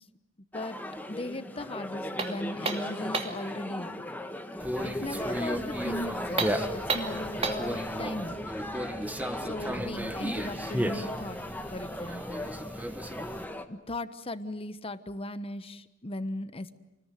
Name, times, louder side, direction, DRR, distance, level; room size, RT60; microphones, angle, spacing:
sound 1, 0.5-13.6, left 1 dB, 10° left, 1.5 m, -38 dB
voice 1, 1.1-4.1 4.8-8.5 9.4-11.4 11.7-12.5 13.7-16.7, left 1 dB, 30° left, 12 dB, 1.2 m, -37 dB
sound 2, 2.2-3.5 6.3-7.7, right 4 dB, 30° right, 2.7 m, -32 dB
Conversation, 4.6-13.4, equal, 10° right, 1.5 m, -35 dB
28.5 x 20.5 x 9.4 m, 0.95 s
head